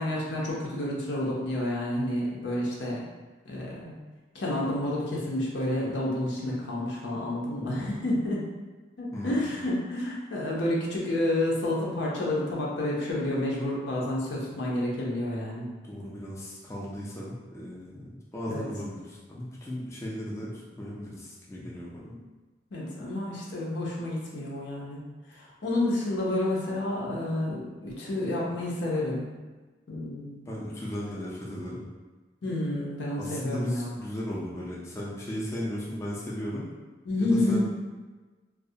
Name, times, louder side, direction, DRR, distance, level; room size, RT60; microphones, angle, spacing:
voice 1, 0.0-3.0 3.5-3.9 4.3-8.4 9.0-15.7 18.5-18.6 22.7-25.0 25.3-29.3 29.9-30.4 32.4-33.9 37.1-37.6, left 1 dB, 80° left, -4 dB, 0.6 m, -29 dB
voice 2, 9.1-9.5 15.8-22.1 30.5-31.9 33.2-36.7 37.2-37.6, equal, 15° left, -6 dB, 0.3 m, -36 dB
2.3 x 2.0 x 2.7 m, 1.3 s
head